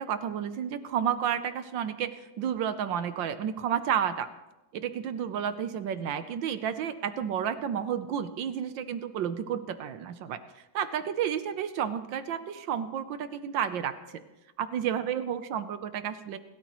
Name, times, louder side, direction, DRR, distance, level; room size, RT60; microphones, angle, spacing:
voice 1, 0.0-4.3 4.8-10.4 10.7-14.2 14.6-16.4, right 8 dB, 75° right, 11 dB, 1.5 m, -31 dB
28.5 x 13.0 x 3.1 m, 1.0 s
omnidirectional pair, 2.1 m